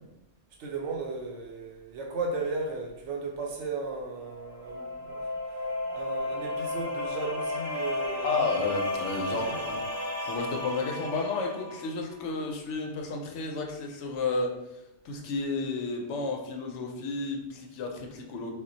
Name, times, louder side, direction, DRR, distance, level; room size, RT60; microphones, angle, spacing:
voice 1, 0.6-5.6 5.9-8.4 9.3-9.7, right 3 dB, 85° right, 1 dB, 0.9 m, -35 dB
sound 1, 4.2-11.9, left 1 dB, 10° left, 1.0 m, -33 dB
voice 2, 8.2-9.8 10.2-18.5, left 3 dB, 80° left, 2 dB, 0.9 m, -32 dB
2.2 x 2.1 x 3.8 m, 0.91 s
omnidirectional pair, 1.2 m